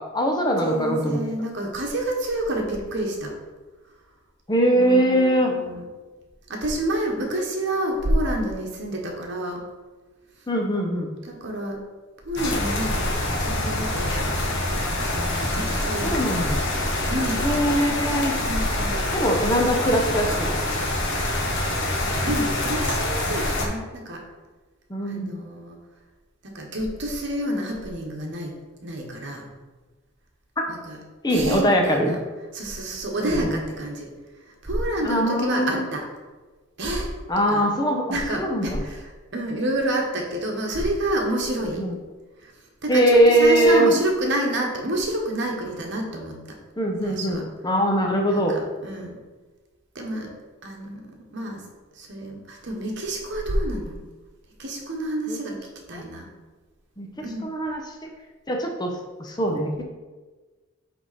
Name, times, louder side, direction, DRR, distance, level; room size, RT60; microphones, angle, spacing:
voice 1, 0.0-1.2 4.5-5.5 10.5-11.2 16.0-16.6 17.4-18.4 19.1-20.5 24.9-25.4 31.2-32.1 33.2-33.6 35.0-35.8 37.3-38.8 41.8-41.9 42.9-43.9 46.8-48.6 55.3-55.4 55.9-56.0 57.0-57.1 57.4-58.1 58.5-59.8, right 1 dB, 20° left, 1 dB, 0.7 m, -22 dB
voice 2, 0.6-3.3 4.7-5.8 6.5-9.6 11.2-11.8 12.2-13.1 13.4-14.4 15.4-16.3 17.1-17.9 18.3-19.1 22.2-24.2 25.0-25.8 26.4-28.5 28.8-29.5 30.7-31.0 31.3-32.2 32.5-34.1 34.5-36.0 36.8-37.1 37.5-37.7 38.1-41.9 42.4-42.5 42.8-46.4 47.0-47.4 48.3-49.2 49.9-50.3 50.6-51.6 51.9-54.0 54.6-55.6 55.9-56.3 57.2-57.5, right 1 dB, 55° right, 0 dB, 1.2 m, -28 dB
sound 1, 12.4-23.7, left 1 dB, 55° left, 1.2 m, -25 dB
sound 2, 15.0-23.2, left 1 dB, 10° right, 0.8 m, -41 dB
8.0 x 3.6 x 4.2 m, 1.3 s
head